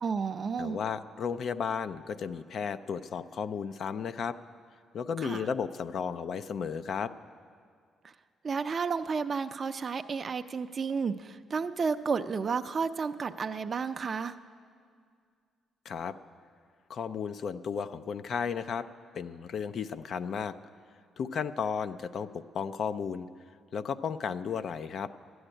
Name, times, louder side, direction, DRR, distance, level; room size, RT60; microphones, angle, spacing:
voice 1, 0.0-0.8 5.2-5.5 8.0-8.1 8.4-14.3, right 5 dB, 40° right, 9 dB, 0.4 m, -32 dB
voice 2, 0.6-4.3 4.9-7.1 15.9-16.1 16.9-18.8 19.1-20.5 21.2-23.3 23.7-25.1, left 6 dB, 60° left, 12 dB, 0.4 m, -34 dB
11.5 x 7.9 x 9.9 m, 2.1 s
cardioid pair, 90°, 0 cm